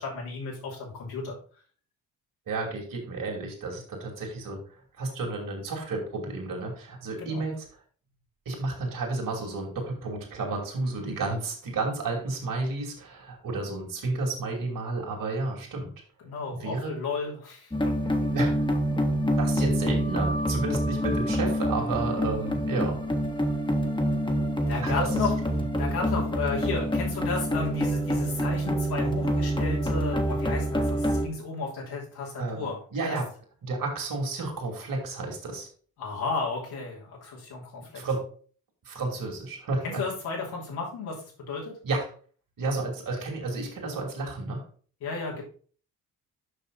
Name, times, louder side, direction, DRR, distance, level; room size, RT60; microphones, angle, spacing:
voice 1, 0.0-1.4 7.2-7.4 16.2-17.9 24.7-25.3 25.8-32.8 33.1-33.2 36.0-38.0 39.8-41.8 45.0-45.4, left 4 dB, 75° left, -3 dB, 3.1 m, -33 dB
voice 2, 2.5-4.6 5.0-7.7 8.5-15.9 16.5-16.9 18.3-18.7 19.4-23.0 24.8-25.1 32.4-33.3 33.6-35.7 37.8-38.3 38.8-40.0 41.8-42.1 42.6-44.7, right 3 dB, 55° right, 0 dB, 2.8 m, -31 dB
sound 1, 17.7-31.3, equal, 10° left, 1.5 m, -26 dB
6.6 x 5.8 x 4.0 m, 0.42 s
hypercardioid pair, 50°, 38 cm